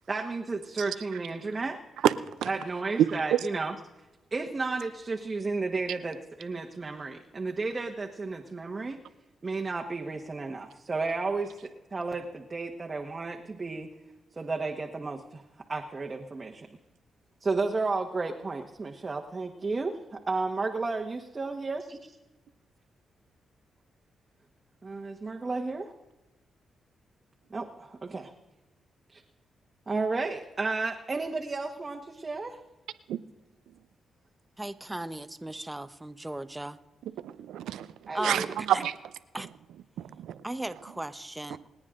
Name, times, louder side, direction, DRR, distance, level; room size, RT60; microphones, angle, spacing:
voice 1, 0.1-1.8 2.5-3.7 4.3-9.0 9.4-13.9 14.4-15.4 15.7-16.7 17.4-21.8 24.8-25.9 27.5-28.3 29.1-29.2 29.9-32.6 38.1-38.5, right 3 dB, 35° right, 1.3 m, -32 dB
voice 2, 34.6-36.8 38.1-38.5 38.7-38.8 39.3-39.5 40.4-41.6, right 1 dB, 15° right, 1.0 m, -36 dB
voice 3, 37.2-38.9 40.0-40.4 41.5-41.6, right 11 dB, 90° right, 0.7 m, -28 dB
28.5 x 9.6 x 3.8 m
cardioid pair, 65°, 0 cm